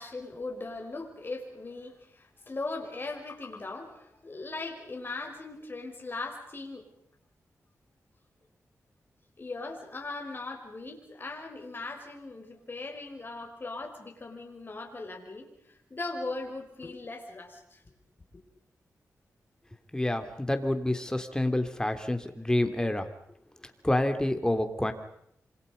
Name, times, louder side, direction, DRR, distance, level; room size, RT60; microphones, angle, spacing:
voice 1, 0.0-6.8 9.4-17.8, left 3 dB, 35° left, 2 dB, 6.3 m, -39 dB
voice 2, 19.9-23.1 23.8-24.9, left 1 dB, 10° left, 8 dB, 3.3 m, -28 dB
27.5 x 27.0 x 5.4 m, 0.74 s
cardioid pair, 70°, 6 cm